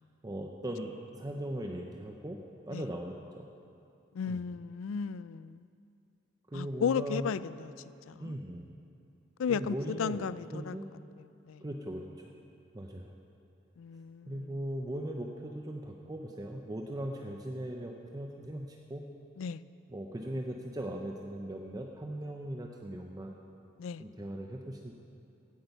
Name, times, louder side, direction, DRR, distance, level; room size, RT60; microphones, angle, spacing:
voice 1, 0.2-3.5 4.3-4.5 6.5-7.3 8.2-8.7 9.5-10.2 10.5-10.9 11.6-12.3 12.7-13.1 14.3-19.0 19.9-23.3 24.0-24.9, right 1 dB, 20° right, 0.6 m, -39 dB
voice 2, 4.1-5.6 6.5-7.7 8.1-8.3 9.4-10.8 11.5-11.6 13.8-14.5 19.4-19.6 23.8-24.0, left 6 dB, 80° left, 0.4 m, -34 dB
16.0 x 8.6 x 5.5 m
head